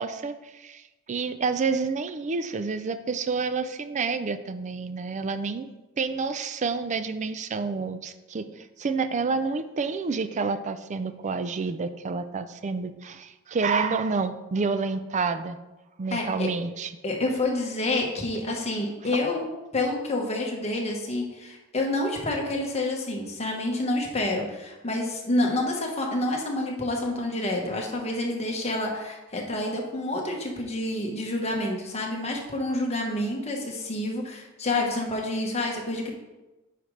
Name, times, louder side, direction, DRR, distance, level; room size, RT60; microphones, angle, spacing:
voice 1, 0.0-5.7 6.0-15.6 16.0-16.9, right 4 dB, 35° right, 11 dB, 0.4 m, -29 dB
voice 2, 16.1-16.5 17.0-19.4 19.7-36.1, left 2 dB, 30° left, 0 dB, 1.2 m, -28 dB
9.0 x 5.0 x 3.2 m, 1.1 s
head